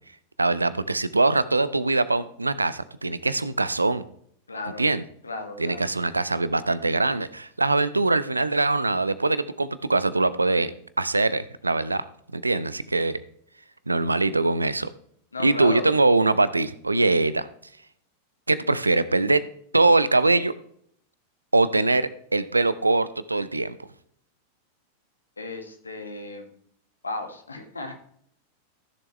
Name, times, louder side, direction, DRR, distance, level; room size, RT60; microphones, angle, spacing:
voice 1, 0.4-4.0 4.8-5.0 5.6-10.7 11.0-12.0 12.3-13.2 13.9-14.9 15.4-17.5 18.5-19.4 19.7-20.5 21.5-23.8, right 3 dB, 80° right, 16 dB, 0.6 m, -22 dB
voice 2, 4.5-4.8 5.2-6.1 15.3-15.9 25.4-26.5 27.0-28.0, left 2 dB, 80° left, 5 dB, 1.7 m, -34 dB
15.0 x 7.0 x 3.2 m, 0.66 s
figure-of-eight pair, 90°, 0 cm